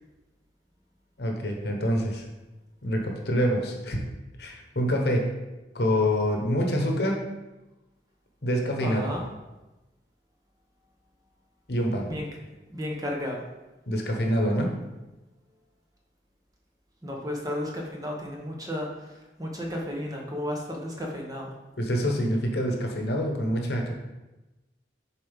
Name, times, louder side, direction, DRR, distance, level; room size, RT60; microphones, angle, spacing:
voice 1, 1.2-2.2 2.8-4.0 4.4-5.3 5.7-7.2 8.4-9.1 11.7-12.1 13.9-14.7 21.8-23.9, equal, 60° left, 2 dB, 1.0 m, -26 dB
voice 2, 8.8-9.2 12.1-12.3 12.7-13.4 17.0-21.5, left 1 dB, 20° right, 0 dB, 0.9 m, -33 dB
7.2 x 4.4 x 3.5 m, 1.1 s
head